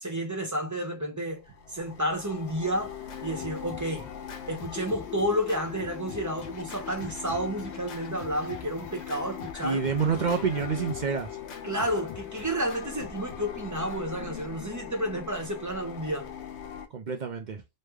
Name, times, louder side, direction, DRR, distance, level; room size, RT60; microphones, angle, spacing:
voice 1, 0.0-4.1 4.5-9.8 11.6-16.3, equal, 20° right, 0.8 m, -31 dB
sound 1, 1.4-16.9, left 8 dB, 80° left, 0.9 m, -41 dB
Scratching (performance technique), 2.2-14.3, left 6 dB, 50° left, 0.6 m, -46 dB
voice 2, 9.6-11.3 16.9-17.6, right 6 dB, 55° right, 0.5 m, -28 dB
3.2 x 2.1 x 3.3 m
omnidirectional pair, 1.1 m